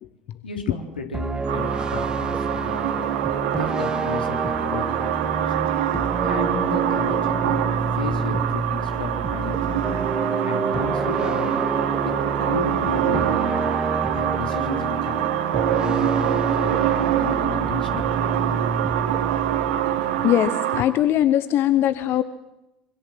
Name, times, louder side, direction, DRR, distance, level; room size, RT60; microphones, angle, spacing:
voice 1, 0.4-2.9 3.5-4.9 5.2-5.6 6.2-7.7 7.9-9.9 10.4-11.6 12.0-13.7 14.1-15.3 15.7-16.2 16.5-18.1, left 4 dB, 80° left, 4 dB, 3.7 m, -33 dB
sound 1, 1.1-20.3, right 3 dB, 15° right, 1.0 m, -28 dB
sound 2, 1.5-20.8, right 11 dB, 65° right, 2.2 m, -25 dB
voice 2, 20.2-22.2, left 12 dB, 45° left, 14 dB, 1.1 m, -20 dB
25.5 x 25.5 x 7.6 m, 0.94 s
figure-of-eight pair, 65°, 5 cm